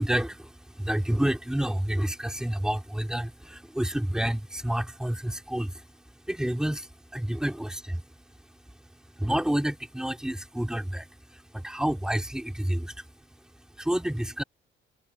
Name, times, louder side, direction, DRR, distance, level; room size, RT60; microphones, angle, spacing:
voice 1, 0.0-5.9 6.3-8.0 9.2-13.1 13.6-14.4, right 1 dB, 5° right, 3.0 m, -29 dB
open air
cardioid pair, 170°, 20 cm